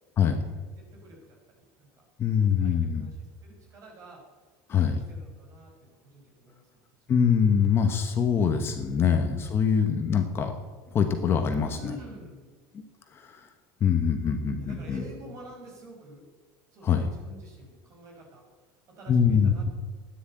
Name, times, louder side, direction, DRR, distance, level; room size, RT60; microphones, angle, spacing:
voice 1, 0.9-2.1 2.4-4.2 4.7-6.7 11.7-12.5 14.6-16.2 16.7-18.4 18.9-19.7, equal, 35° right, 0 dB, 5.5 m, -48 dB
voice 2, 2.2-3.1 4.7-5.0 7.1-10.5 10.9-12.0 13.1-13.5 13.8-15.0 16.8-17.1 19.1-19.7, left 7 dB, 25° left, 6 dB, 1.1 m, -24 dB
14.5 x 10.0 x 8.8 m, 1.4 s
cardioid pair, 165°, 9 cm